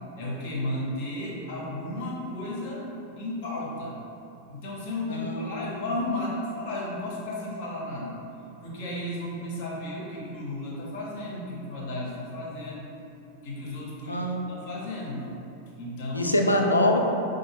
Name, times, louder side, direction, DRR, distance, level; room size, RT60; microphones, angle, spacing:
voice 1, 0.2-2.8 3.2-3.9 4.5-8.2 8.6-12.9 13.4-15.3 15.8-16.3, left 1 dB, 50° left, -5 dB, 0.8 m, -34 dB
voice 2, 5.1-5.7 14.1-14.4 16.1-17.0, left 1 dB, 80° left, 2 dB, 0.3 m, -24 dB
4.9 x 2.0 x 3.3 m, 2.7 s
figure-of-eight pair, 90°, 0 cm